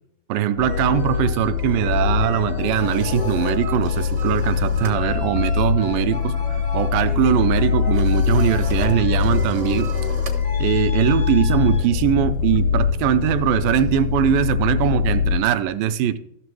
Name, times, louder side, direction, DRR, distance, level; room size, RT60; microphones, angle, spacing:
voice 1, 0.3-9.9 10.6-16.2, right 10 dB, 85° right, 2.3 m, -21 dB
sound 1, 0.6-15.4, left 7 dB, 85° left, 1.4 m, -23 dB
sound 2, 0.6-11.9 13.1-13.4, left 3 dB, 50° left, 0.7 m, -35 dB
sound 3, 2.3-5.0 5.3-5.6 5.9-12.5, right 4 dB, 65° right, 0.7 m, -40 dB
13.5 x 6.7 x 4.7 m
omnidirectional pair, 4.0 m